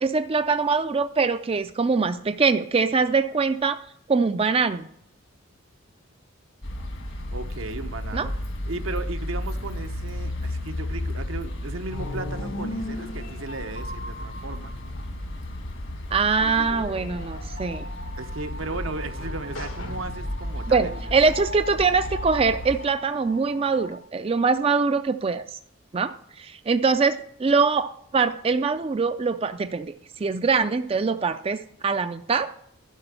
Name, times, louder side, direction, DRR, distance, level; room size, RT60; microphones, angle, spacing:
voice 1, 0.0-3.8 4.1-4.9 8.1-8.3 16.1-17.9 20.7-25.4 25.9-29.9 30.2-32.5, right 4 dB, 30° right, 9 dB, 0.4 m, -23 dB
sound 1, 6.6-22.8, left 1 dB, 65° left, 1.6 m, -33 dB
voice 2, 7.3-8.3 8.6-14.7 18.2-21.3, right 3 dB, 80° right, 7 dB, 0.9 m, -36 dB
sound 2, 11.9-24.0, left 2 dB, 80° left, 1.5 m, -39 dB
11.0 x 5.9 x 6.8 m, 0.69 s
head